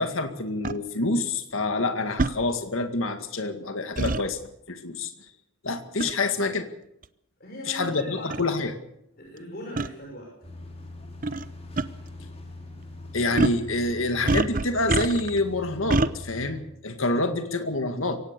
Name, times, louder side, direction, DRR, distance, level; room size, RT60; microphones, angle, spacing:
voice 1, 0.0-4.4 4.7-5.1 5.6-6.7 7.7-8.7 13.1-18.2, left 2 dB, 70° left, 7 dB, 2.0 m, -27 dB
sound 1, 0.6-0.8 2.2-2.4 4.0-4.2 6.0-6.2 7.0-7.1 7.9-8.0 8.3-8.4 9.8-9.9 11.2-11.4 11.8-11.9 13.4-13.6 14.3-15.4 15.9-16.1, right 2 dB, 40° right, 0.8 m, -25 dB
voice 2, 7.4-8.4 9.2-10.3 17.1-17.4, equal, 45° left, -1 dB, 6.1 m, -40 dB
sound 2, 10.4-16.6, left 2 dB, 30° left, 5.0 m, -42 dB
24.0 x 18.0 x 6.8 m, 0.78 s
head